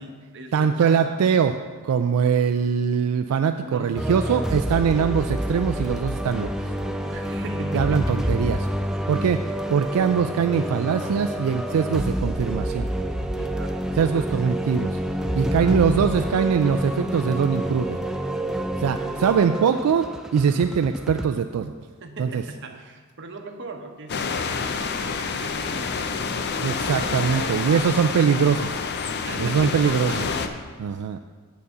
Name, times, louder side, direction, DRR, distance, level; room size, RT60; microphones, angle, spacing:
voice 1, 0.0-1.2 3.6-4.2 7.0-8.4 13.3-13.8 14.1-14.4 15.4-15.8 18.5-18.6 18.9-19.8 22.0-26.7 27.3-27.9 29.1-31.2, right 2 dB, 55° right, 5 dB, 0.8 m, -39 dB
voice 2, 0.5-1.6 1.8-6.7 7.7-8.7 9.1-9.4 9.7-12.9 14.0-15.0 15.4-18.0 18.8-21.7 22.2-22.4 26.6-28.8 29.3-30.3 30.8-31.2, right 6 dB, 85° right, 8 dB, 0.3 m, -22 dB
sound 1, 4.0-21.3, right 1 dB, 5° right, 0.3 m, -28 dB
sound 2, 24.1-30.5, left 5 dB, 50° left, 0.5 m, -28 dB
8.7 x 4.1 x 6.8 m, 1.5 s
head